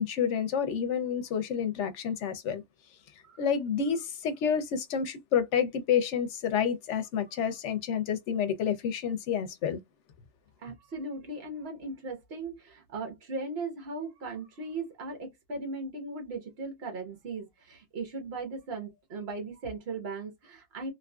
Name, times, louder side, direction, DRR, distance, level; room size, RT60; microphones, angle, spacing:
voice 1, 0.0-2.6 3.4-9.8, left 7 dB, 85° left, 1.0 m, -29 dB
voice 2, 10.6-20.9, right 3 dB, 60° right, 1.2 m, -38 dB
3.0 x 2.5 x 2.3 m
omnidirectional pair, 1.2 m